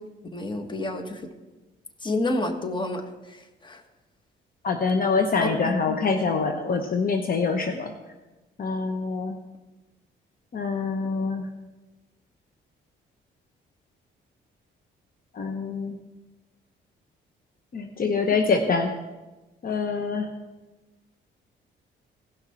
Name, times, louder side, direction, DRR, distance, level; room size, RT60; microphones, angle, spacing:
voice 1, 0.3-1.2 2.0-3.0 3.6-3.8 5.4-6.0, left 2 dB, 25° left, 6 dB, 1.4 m, -29 dB
voice 2, 4.6-7.9 8.6-9.4 10.5-11.4 15.4-16.0 17.7-18.9 19.6-20.3, left 4 dB, 45° left, 5 dB, 0.9 m, -25 dB
17.0 x 6.1 x 4.3 m, 1.1 s
cardioid pair, 90°, 20 cm